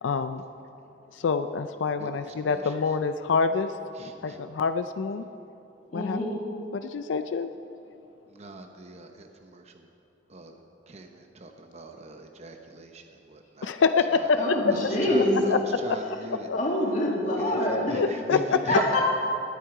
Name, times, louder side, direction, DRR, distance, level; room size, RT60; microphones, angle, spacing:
voice 1, 0.0-0.4 1.1-3.7 4.2-5.2 5.9-6.2 6.7-7.5 13.6-14.7 15.5-16.6 17.9-18.8, left 5 dB, 75° left, 9 dB, 0.4 m, -26 dB
voice 2, 5.9-6.4 14.4-15.4 15.9-16.2 16.5-18.1 18.6-19.0, left 1 dB, 45° left, -2 dB, 1.9 m, -26 dB
voice 3, 8.3-9.3 9.5-9.6 10.3-10.5 10.9-13.0 13.3-13.7 14.7-14.8 15.1-15.6 15.8-16.5 17.4-17.5 17.9-19.0, right 2 dB, 35° right, 4 dB, 0.8 m, -38 dB
18.5 x 9.1 x 4.8 m, 2.8 s
head